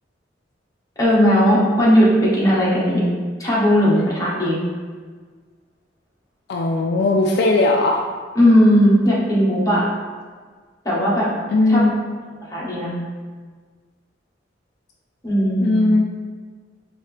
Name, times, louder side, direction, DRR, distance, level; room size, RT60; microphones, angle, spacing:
voice 1, 1.0-3.0 3.4-4.6 8.3-9.8 10.8-11.3 11.7-11.9 12.5-12.9 15.2-15.8, equal, 20° left, -7 dB, 1.0 m, -17 dB
voice 2, 6.5-8.0 11.5-11.9 15.6-16.0, left 2 dB, 60° left, 1 dB, 0.3 m, -18 dB
4.3 x 2.8 x 3.2 m, 1.5 s
head